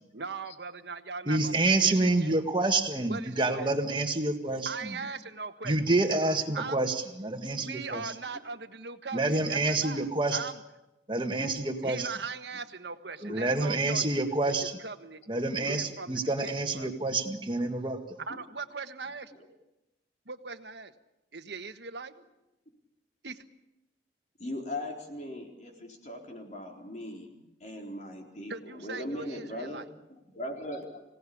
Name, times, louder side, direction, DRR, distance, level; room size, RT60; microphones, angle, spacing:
voice 1, 0.1-2.5 3.1-3.7 4.6-5.8 6.5-6.8 7.6-10.6 11.8-14.2 14.8-15.2 15.7-16.9 18.3-19.3 20.3-20.9 21.3-22.1 23.2-23.4 28.5-29.9, right 4 dB, 75° right, 9 dB, 1.4 m, -40 dB
voice 2, 1.3-5.0 5.6-8.0 9.1-10.4 11.1-12.1 13.2-14.7 15.3-18.0, right 2 dB, 25° right, 5 dB, 1.9 m, -28 dB
voice 3, 24.4-27.3 27.6-31.0, left 1 dB, 40° left, 1 dB, 4.2 m, -39 dB
26.0 x 17.5 x 8.7 m, 0.95 s
head